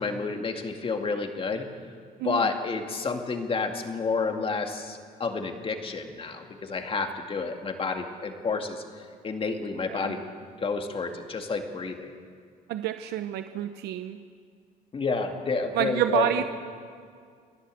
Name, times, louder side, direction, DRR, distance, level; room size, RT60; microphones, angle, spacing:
voice 1, 0.0-1.7 2.2-12.1 14.9-16.4, left 4 dB, 30° left, 4 dB, 2.2 m, -30 dB
voice 2, 12.7-14.2 15.7-16.4, right 11 dB, 80° right, 9 dB, 0.8 m, -28 dB
30.0 x 11.5 x 7.6 m, 2.2 s
cardioid pair, 110°, 17 cm